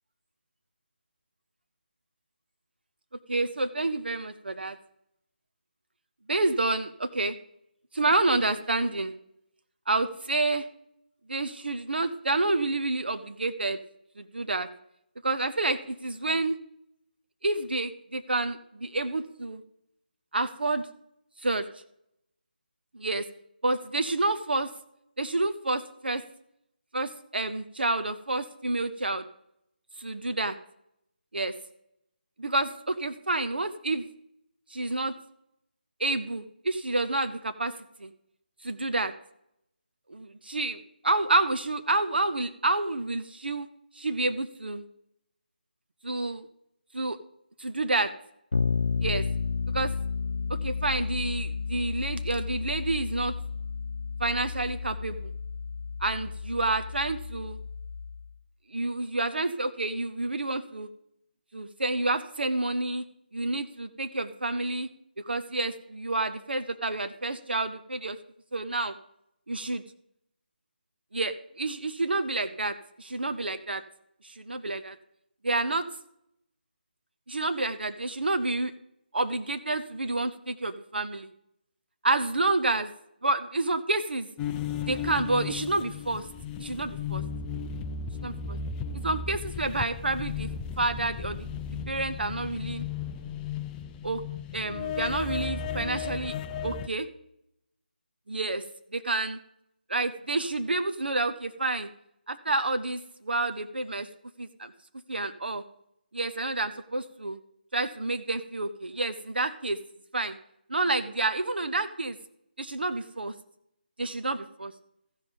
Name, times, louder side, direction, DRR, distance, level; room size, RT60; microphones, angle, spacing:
voice 1, 3.3-4.8 6.3-7.3 7.9-9.1 9.9-10.7 11.3-13.8 14.2-14.7 15.2-16.6 17.4-19.6 20.3-20.9 21.4-21.7 22.9-23.2 23.6-24.7 25.2-26.2 26.9-29.2 30.0-30.6 31.3-31.5 32.4-34.1 34.7-35.1 36.0-37.7 38.0-38.1 38.6-39.1 40.1-43.7 44.0-44.8 46.0-46.5 46.9-47.2 47.6-48.1 49.0-49.2 49.7-49.9 50.5-53.3 54.2-55.3 56.0-57.6 58.7-60.9 61.5-63.0 63.3-64.9 65.2-68.2 68.5-68.9 69.5-69.8 71.1-73.8 74.2-75.0 75.4-75.9 77.3-78.7 79.1-81.3 82.0-82.9 83.2-84.3 84.8-86.2 86.6-87.2 88.2-88.6 88.9-90.5 90.8-91.5 91.9-92.8 94.0-94.2 94.5-96.4 96.6-97.1 98.3-98.6 98.9-99.4 99.9-101.9 102.3-104.1 104.4-104.7 105.1-105.6 106.1-107.4 107.7-109.8 110.1-110.4 110.7-112.2 112.6-113.3 114.0-114.7, right 2 dB, 80° right, 10 dB, 0.8 m, -29 dB
Bass guitar, 48.5-58.3, left 5 dB, 75° left, 0.8 m, -32 dB
sound 1, 84.4-96.9, left 6 dB, 10° left, 0.3 m, -35 dB
15.0 x 5.4 x 5.1 m, 0.76 s
figure-of-eight pair, 160°, 5 cm